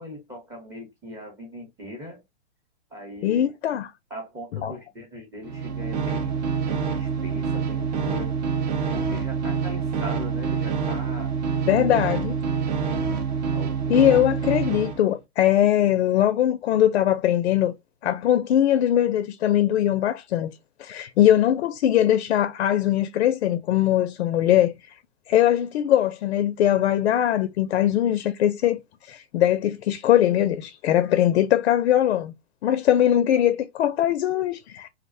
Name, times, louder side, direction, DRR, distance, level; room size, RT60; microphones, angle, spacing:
voice 1, 0.0-2.2 2.9-3.5 4.1-8.3 8.9-11.3 11.6-11.9 13.5-14.0, equal, 10° right, 0.8 m, -39 dB
voice 2, 3.2-3.9 4.6-4.7 11.7-12.3 13.9-17.7 18.0-20.5 20.8-24.7 25.3-28.8 29.1-32.3 32.6-34.9, left 11 dB, 75° left, 0.5 m, -21 dB
sound 1, 5.4-15.0, right 6 dB, 40° right, 0.5 m, -26 dB
2.4 x 2.1 x 2.5 m
hypercardioid pair, 145°, 33 cm